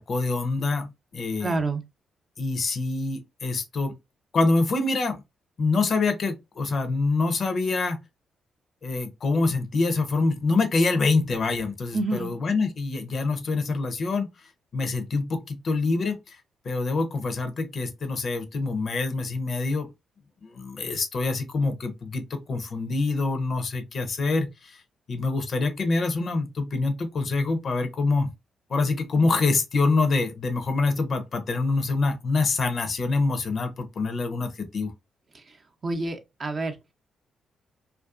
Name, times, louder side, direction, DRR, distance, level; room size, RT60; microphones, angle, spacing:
voice 1, 0.0-1.6 2.4-3.9 4.3-5.2 5.6-8.0 8.8-14.3 14.7-16.4 16.6-19.9 20.4-24.8 25.1-28.3 28.7-34.9, left 3 dB, 55° left, 0.5 m, -25 dB
voice 2, 1.4-1.8 11.9-12.3 35.3-35.4 35.8-36.8, right 2 dB, 45° right, 0.5 m, -28 dB
2.5 x 2.3 x 2.3 m
hypercardioid pair, 40°, 0 cm